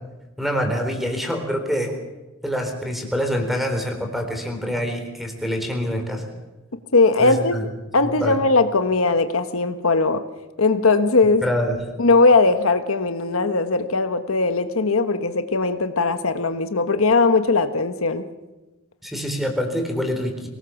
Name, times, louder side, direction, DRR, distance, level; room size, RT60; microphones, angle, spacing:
voice 1, 0.4-2.0 2.4-6.3 7.2-7.6 8.0-8.4 11.4-11.8 19.0-20.5, equal, ahead, 4 dB, 3.9 m, -25 dB
voice 2, 6.9-7.7 7.9-10.2 10.6-11.4 12.0-18.2, left 3 dB, 80° left, 9 dB, 1.2 m, -19 dB
24.5 x 18.5 x 7.1 m, 1.1 s
head